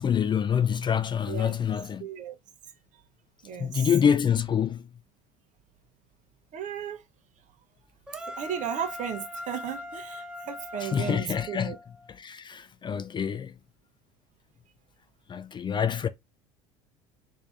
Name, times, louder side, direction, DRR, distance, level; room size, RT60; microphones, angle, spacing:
voice 1, 0.0-2.1 3.6-4.9 10.8-11.7 12.2-13.5 15.3-16.1, left 8 dB, 30° left, 0.4 m, -26 dB
voice 2, 2.0-2.4 3.4-3.9 6.5-7.0 8.2-11.8, right 8 dB, 50° right, 0.9 m, -35 dB
sound 1, 8.1-12.2, left 2 dB, 5° right, 0.7 m, -41 dB
3.3 x 2.7 x 3.4 m
hypercardioid pair, 70°, 17 cm